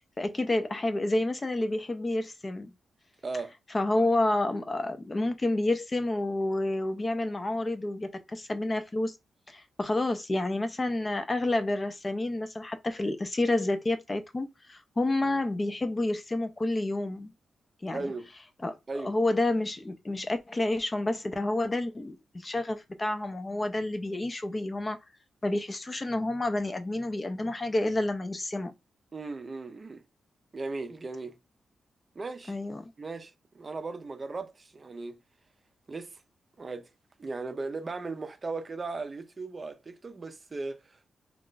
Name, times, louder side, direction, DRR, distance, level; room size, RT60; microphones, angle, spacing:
voice 1, 0.2-2.7 3.7-9.2 9.5-17.3 17.8-18.1 18.6-18.8 19.0-25.0 25.4-28.7 32.5-32.9, left 2 dB, 25° left, 0.4 m, -29 dB
voice 2, 3.2-3.5 17.9-18.3 18.9-19.2 29.1-30.0 30.5-31.4 32.2-32.6 33.0-35.2 35.9-36.2 36.6-36.9 37.2-41.1, right 3 dB, 35° right, 0.5 m, -37 dB
2.5 x 2.3 x 3.7 m
cardioid pair, 110°, 0 cm